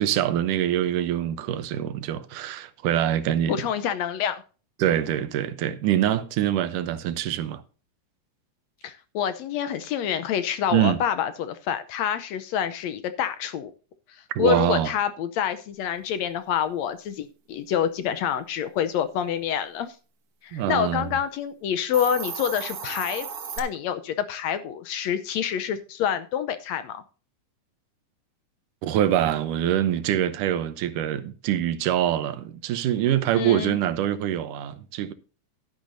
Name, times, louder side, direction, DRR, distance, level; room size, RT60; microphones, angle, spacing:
voice 1, 0.0-3.6 4.8-7.6 10.7-11.0 14.4-14.9 20.5-21.1 28.8-35.1, right 11 dB, 85° right, 2.4 m, -24 dB
voice 2, 3.5-4.4 8.8-13.7 14.1-20.0 20.4-23.3 23.6-27.0 33.3-33.8, left 9 dB, 70° left, 1.8 m, -27 dB
Hiss, 21.8-23.6, right 7 dB, 65° right, 0.9 m, -34 dB
12.0 x 10.5 x 2.7 m
omnidirectional pair, 3.6 m